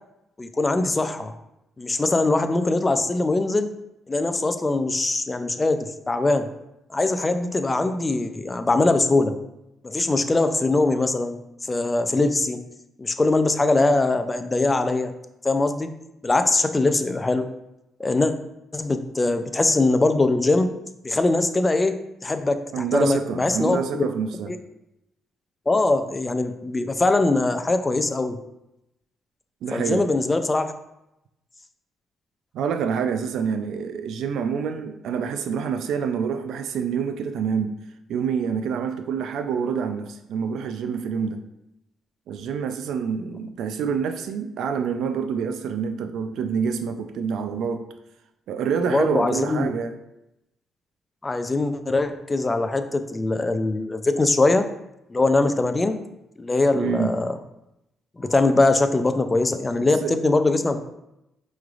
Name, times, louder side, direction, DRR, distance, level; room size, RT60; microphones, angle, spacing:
voice 1, 0.4-1.3 1.8-3.7 4.1-6.5 6.9-9.4 9.8-12.6 13.0-15.1 15.4-15.9 16.2-17.5 18.0-18.3 18.7-20.7 21.0-24.0 24.5-24.6 25.7-28.4 29.7-30.7 48.9-49.7 51.2-54.7 55.1-56.0 56.4-57.3 58.2-60.8, left 2 dB, 20° left, 9 dB, 0.3 m, -22 dB
voice 2, 22.7-24.5 29.6-30.1 32.5-37.7 38.1-41.4 42.3-47.9 48.5-50.0 56.7-57.2 59.8-60.1, right 6 dB, 75° right, 8 dB, 0.3 m, -27 dB
4.8 x 3.1 x 2.4 m, 0.87 s
cardioid pair, 90°, 0 cm